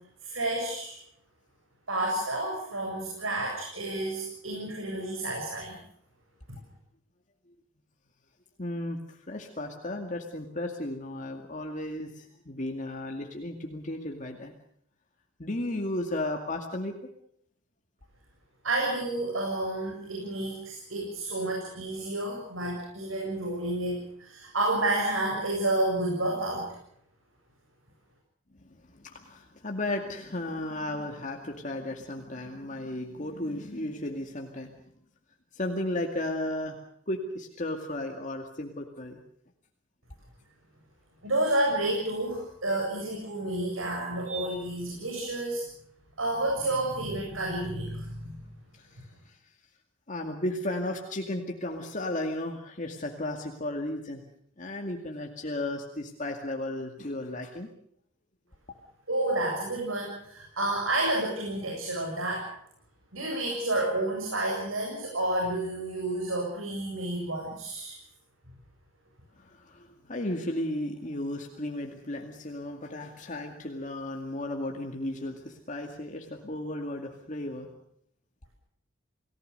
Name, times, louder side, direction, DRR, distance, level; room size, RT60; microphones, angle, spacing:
voice 1, 0.2-1.0 1.9-5.8 6.5-6.6 18.6-26.7 41.2-45.6 46.2-48.4 59.1-62.4 63.1-67.9, right 1 dB, 85° right, 0 dB, 7.7 m, -30 dB
voice 2, 8.6-14.5 15.4-16.9 28.6-34.7 35.5-36.8 37.1-39.2 48.7-49.4 50.1-54.2 54.6-57.7 69.4-77.7, left 1 dB, 40° left, 3 dB, 2.2 m, -34 dB
30.0 x 18.5 x 6.7 m, 0.70 s
head